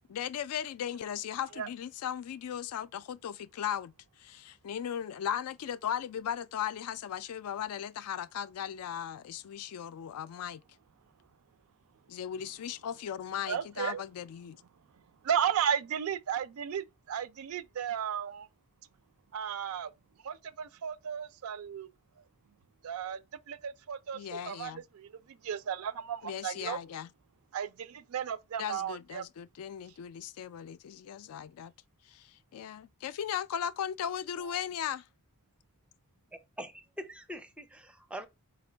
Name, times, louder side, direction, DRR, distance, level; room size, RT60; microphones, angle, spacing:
voice 1, 0.1-3.9 4.2-10.6 12.1-14.6 24.1-24.8 26.2-27.1 28.6-31.7 32.1-35.0, left 9 dB, 80° left, 0.3 m, -37 dB
voice 2, 13.5-14.0 15.2-18.5 19.3-19.9 20.2-21.9 22.8-23.2 23.5-26.8 27.5-29.2, right 8 dB, 70° right, 0.4 m, -34 dB
voice 3, 36.3-38.3, equal, 5° right, 0.4 m, -43 dB
4.3 x 2.3 x 3.2 m
head